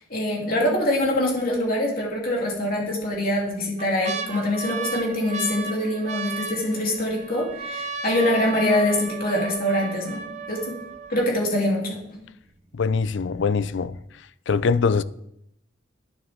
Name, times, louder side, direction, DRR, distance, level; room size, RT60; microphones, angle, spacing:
voice 1, 0.1-10.8 11.1-12.0, left 1 dB, 50° left, 3.0 m, -24 dB
sound 1, 0.8-1.1 1.5-1.6 2.6-3.1 3.5-11.5 12.2-12.3 12.5-13.0 13.4-13.5, right 5 dB, 35° right, 0.8 m, -34 dB
voice 2, 12.7-14.0 14.5-15.0, left 5 dB, 65° left, 0.4 m, -22 dB
11.0 x 9.5 x 3.6 m
head